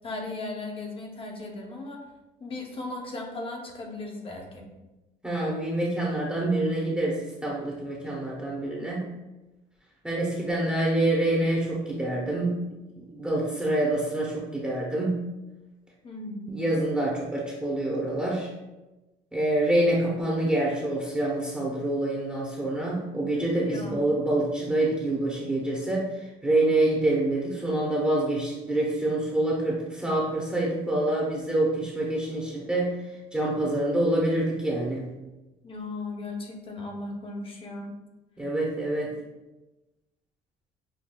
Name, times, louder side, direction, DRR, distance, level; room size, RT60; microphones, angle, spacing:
voice 1, 0.0-2.0 2.4-4.7 16.0-16.7 23.6-24.1 35.6-37.9, left 2 dB, 30° left, 1 dB, 0.8 m, -37 dB
voice 2, 5.2-9.1 10.0-12.5 13.0-15.2 16.5-18.5 19.3-26.1 26.4-32.9 33.3-35.1 38.4-39.1, right 1 dB, 5° right, -5 dB, 0.7 m, -26 dB
5.9 x 2.2 x 2.2 m, 1.1 s
cardioid pair, 110°, 17 cm